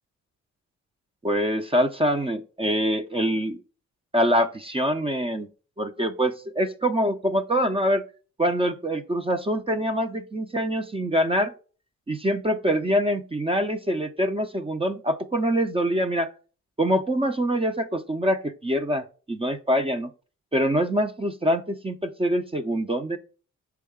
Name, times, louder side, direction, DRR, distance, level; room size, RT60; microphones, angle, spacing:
voice 1, 1.2-3.6 4.1-5.5 5.8-8.0 8.4-11.5 12.1-16.3 16.8-20.1 20.5-23.2, equal, 20° right, 0.6 m, -24 dB
6.3 x 4.7 x 3.6 m
cardioid pair, 75°, 30 cm